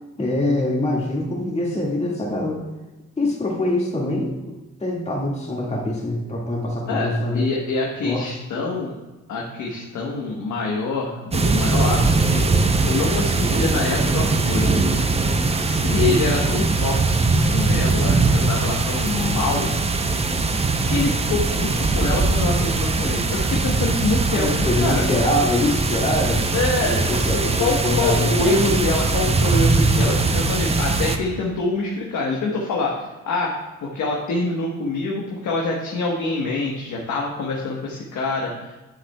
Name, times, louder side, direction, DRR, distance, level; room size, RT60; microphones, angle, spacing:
voice 1, 0.2-2.6 3.2-7.5 8.0-8.3 24.3-26.5 26.8-28.9, left 1 dB, 20° left, -2 dB, 1.9 m, -24 dB
voice 2, 6.9-8.9 9.3-14.7 15.6-19.7 20.7-25.0 26.5-33.5 33.8-38.7, left 3 dB, 75° left, -2 dB, 1.2 m, -25 dB
sound 1, 11.3-31.2, right 3 dB, 20° right, 0.6 m, -21 dB
10.0 x 7.1 x 2.3 m, 1.1 s
cardioid pair, 90°, 30 cm